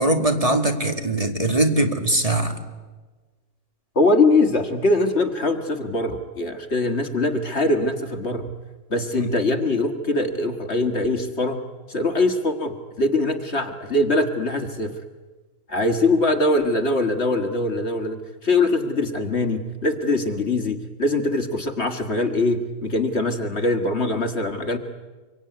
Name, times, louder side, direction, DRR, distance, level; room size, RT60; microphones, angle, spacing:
voice 1, 0.0-2.6 9.1-9.3, right 1 dB, 25° right, 5 dB, 2.0 m, -21 dB
voice 2, 4.0-8.5 8.9-11.6 11.9-14.9 15.7-24.8, left 2 dB, 45° left, 6 dB, 1.9 m, -22 dB
25.0 x 23.5 x 9.5 m, 1.3 s
omnidirectional pair, 1.6 m